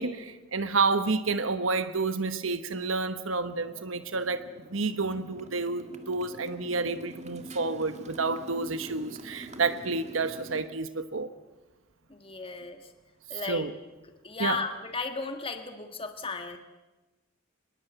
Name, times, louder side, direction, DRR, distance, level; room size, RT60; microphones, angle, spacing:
voice 1, 0.0-11.3 13.3-13.7 14.4-14.6, right 3 dB, 80° right, 1.2 m, -30 dB
Motorcycle, 3.4-10.6, right 1 dB, 35° right, 1.8 m, -46 dB
voice 2, 12.1-12.9 13.3-13.7 14.2-16.6, left 4 dB, 30° left, 1.6 m, -35 dB
24.5 x 21.0 x 8.0 m
head